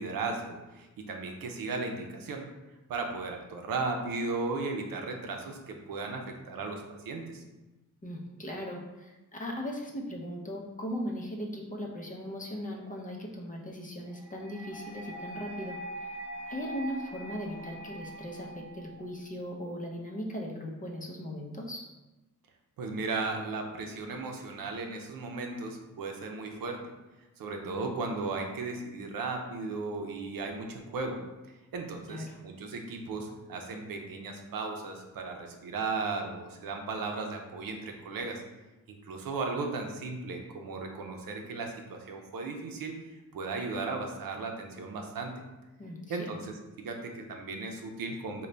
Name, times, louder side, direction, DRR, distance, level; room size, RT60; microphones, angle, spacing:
voice 1, 0.0-2.4 2.9-7.4 22.8-26.8 27.4-31.2 31.7-38.4 38.9-45.4 46.1-48.5, right 3 dB, 85° right, 3 dB, 0.6 m, -36 dB
voice 2, 8.0-16.1 16.5-21.8 32.1-32.4 45.8-46.3, equal, 25° left, 0 dB, 0.6 m, -38 dB
sound 1, 14.2-19.2, right 2 dB, 5° right, 0.7 m, -43 dB
3.8 x 2.2 x 3.2 m, 1.1 s
wide cardioid pair, 100°, 33 cm